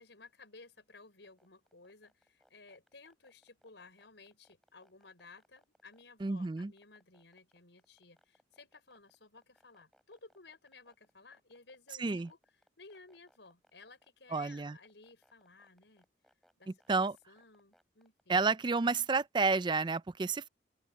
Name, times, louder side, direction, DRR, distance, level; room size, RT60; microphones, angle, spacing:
voice 1, 0.0-12.4 12.8-16.1 16.6-17.0 17.3-18.5, left 3 dB, 85° left, 5.2 m, -57 dB
sound 1, 1.2-18.2, equal, ahead, 6.5 m, -69 dB
voice 2, 6.2-6.7 12.0-12.3 14.3-14.8 16.9-17.2 18.3-20.5, right 4 dB, 25° right, 0.4 m, -30 dB
open air
head